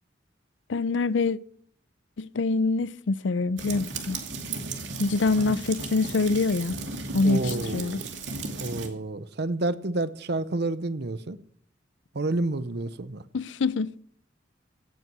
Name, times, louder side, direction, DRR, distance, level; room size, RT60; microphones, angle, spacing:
voice 1, 0.7-1.4 2.2-4.2 5.0-6.8 7.1-8.0 13.3-13.9, left 3 dB, 85° left, 0.5 m, -25 dB
sound 1, 3.6-8.9, right 3 dB, 80° right, 2.4 m, -35 dB
voice 2, 7.2-8.1 8.6-11.4 12.1-13.2, right 2 dB, 60° right, 0.8 m, -29 dB
16.5 x 9.2 x 6.1 m
head